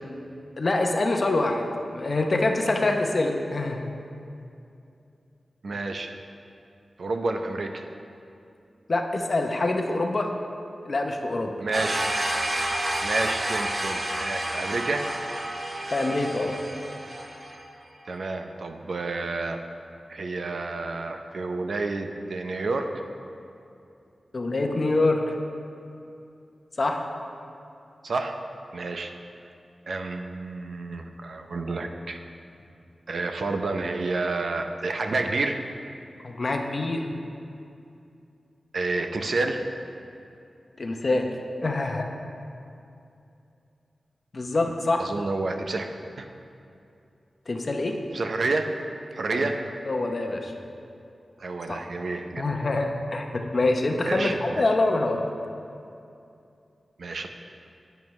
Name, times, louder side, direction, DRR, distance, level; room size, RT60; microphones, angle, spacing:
voice 1, 0.6-1.6 1.9-3.9 8.9-10.3 10.8-11.5 15.9-16.5 24.3-25.3 26.8-27.0 36.2-37.1 40.8-41.3 41.6-42.1 44.3-45.1 47.5-48.0 49.3-49.5 49.9-50.5 51.7-51.8 52.4-55.2, left 2 dB, 40° left, 3 dB, 0.7 m, -25 dB
voice 2, 5.6-6.1 7.0-7.9 11.6-12.1 13.0-15.1 18.1-19.6 20.1-22.9 28.0-28.4 28.7-29.1 29.9-32.2 33.1-35.6 38.7-39.6 45.0-45.8 46.2-46.3 48.1-48.7 49.1-49.6 51.4-52.6 54.0-54.6 57.0-57.3, right 3 dB, 65° right, 5 dB, 0.6 m, -29 dB
sound 1, 11.7-17.6, right 1 dB, 25° right, 0.8 m, -30 dB
10.5 x 9.1 x 3.2 m, 2.6 s
wide cardioid pair, 135°, 0 cm